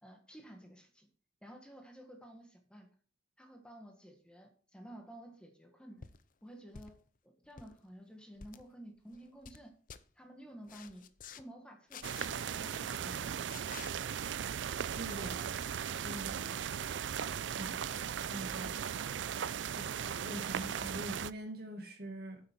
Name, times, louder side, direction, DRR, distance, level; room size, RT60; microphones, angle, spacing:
voice 1, 0.0-1.1 1.4-2.9 3.4-6.1 6.4-6.9 7.2-9.7 10.1-12.0 12.4-13.4, right 1 dB, 5° left, 3 dB, 1.6 m, -52 dB
sound 1, 6.0-6.2 6.7-7.1 7.4-7.7 8.4-8.6 9.1-9.6 9.9-10.0 10.7-11.4 11.9-12.3 13.5-13.9 15.6-15.7, left 6 dB, 45° left, 0.6 m, -50 dB
sound 2, 12.0-21.3, right 8 dB, 85° right, 0.4 m, -37 dB
voice 2, 15.0-15.5 16.0-16.6 17.6-17.8 18.3-18.7 19.7-22.4, right 1 dB, 55° right, 4 dB, 2.2 m, -43 dB
9.4 x 7.9 x 4.6 m, 0.42 s
head